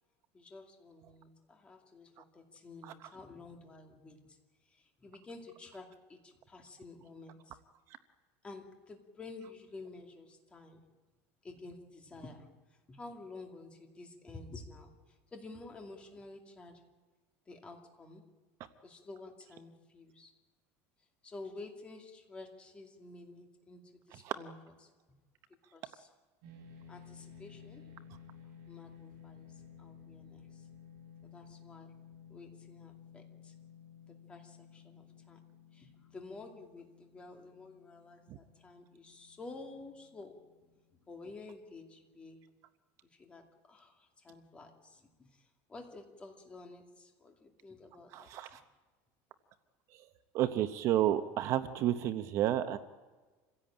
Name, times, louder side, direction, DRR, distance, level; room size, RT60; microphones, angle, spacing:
voice 1, 0.3-4.4 4.6-7.6 8.4-10.8 11.4-16.8 17.5-18.2 18.8-20.3 21.2-24.9 25.7-26.1 26.9-27.9 28.7-30.7 31.2-31.9 32.3-33.5 34.1-35.4 35.7-40.4 41.1-42.4 43.1-48.6, left 3 dB, 15° left, 3 dB, 2.4 m, -51 dB
sound 1, 26.4-40.8, left 6 dB, 60° right, 6.9 m, -55 dB
voice 2, 48.1-48.6 50.3-52.8, right 12 dB, 40° right, 10 dB, 0.8 m, -30 dB
27.0 x 16.5 x 8.8 m, 1.3 s
cardioid pair, 175°, 7 cm